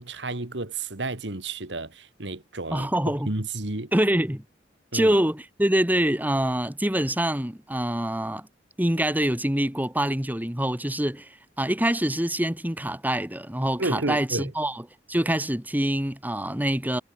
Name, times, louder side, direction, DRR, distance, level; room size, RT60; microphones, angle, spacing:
voice 1, 0.0-2.9 3.3-3.9 4.9-5.2 13.8-14.5, right 2 dB, 80° right, 2.2 m, -31 dB
voice 2, 2.7-3.3 3.9-4.4 4.9-8.5 8.8-11.3 11.6-14.8 15.1-17.0, right 1 dB, 10° right, 2.2 m, -25 dB
head